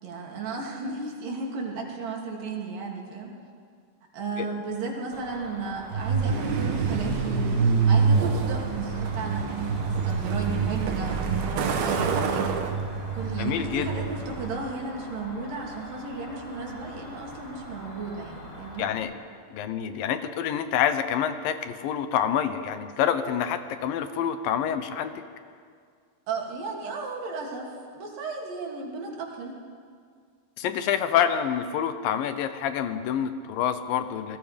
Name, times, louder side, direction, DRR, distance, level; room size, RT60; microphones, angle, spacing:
voice 1, 0.0-3.3 4.1-12.6 13.1-18.9 26.3-29.6, right 4 dB, 70° right, -1 dB, 4.4 m, -34 dB
Cricket, 5.1-19.0, equal, 25° left, 4.4 m, -44 dB
Truck, 5.9-14.6, right 5 dB, 90° right, 3.4 m, -26 dB
voice 2, 13.4-13.9 18.8-19.1 19.5-25.1 30.6-34.4, left 9 dB, 80° left, 10 dB, 2.6 m, -27 dB
28.5 x 20.0 x 5.2 m, 2.1 s
omnidirectional pair, 4.1 m